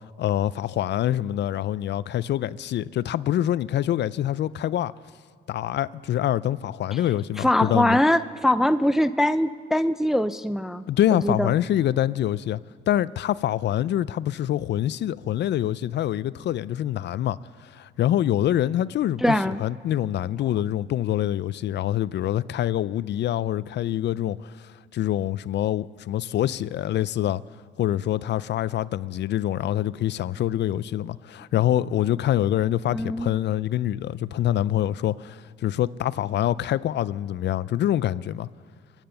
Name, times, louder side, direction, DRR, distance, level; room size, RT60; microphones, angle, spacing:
voice 1, 0.2-4.9 5.5-8.0 10.9-12.6 12.9-17.4 17.7-27.4 27.8-38.5, left 12 dB, 60° left, 0.4 m, -25 dB
voice 2, 7.4-10.8 11.1-11.5 19.2-19.6 32.9-33.3, left 1 dB, ahead, 0.4 m, -22 dB
23.5 x 8.9 x 6.8 m
cardioid pair, 90°, 20 cm